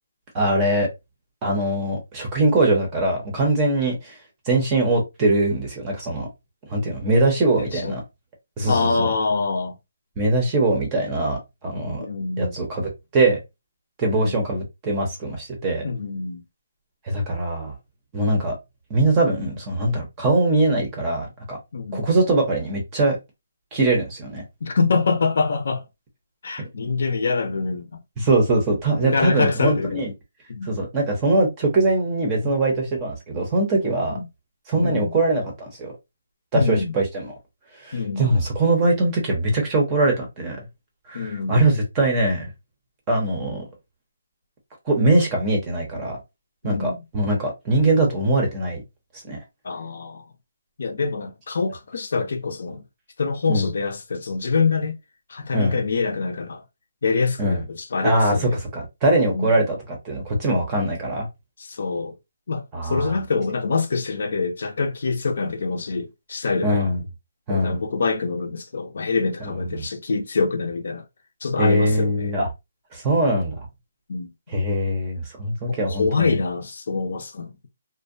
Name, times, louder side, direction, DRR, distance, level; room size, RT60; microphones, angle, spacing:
voice 1, 0.3-0.9 1.4-4.2 4.5-6.3 6.7-8.0 8.6-9.1 10.2-12.1 12.4-13.4 14.0-15.9 17.0-17.7 18.1-18.6 18.9-21.6 21.9-23.2 23.7-24.4 26.6-26.9 28.2-30.1 30.6-34.2 34.7-35.9 36.5-37.3 37.8-40.6 41.1-42.5 43.1-43.6 44.9-46.2 46.6-48.8 49.2-49.4 53.5-53.7 55.5-55.8 57.4-57.6 58.0-61.3 62.7-63.2 66.6-67.0 67.5-67.8 69.5-69.8 71.6-72.5 72.9-73.7 74.5-76.4, right 2 dB, 15° right, 0.6 m, -22 dB
voice 2, 7.6-8.0 8.7-9.7 12.0-12.5 14.2-14.4 15.8-16.4 21.7-22.1 24.6-25.8 26.4-28.0 29.0-30.0 30.5-30.7 32.4-32.5 34.1-34.2 34.8-35.1 36.5-36.9 37.9-38.3 41.1-41.7 46.6-47.0 49.6-50.2 50.8-52.8 53.2-55.0 55.3-56.6 57.0-58.5 59.3-59.5 61.6-62.2 62.5-66.9 67.5-71.0 71.4-72.3 74.1-74.3 75.7-77.5, left 4 dB, 55° left, 0.5 m, -25 dB
2.5 x 2.1 x 2.5 m
hypercardioid pair, 175°, 0 cm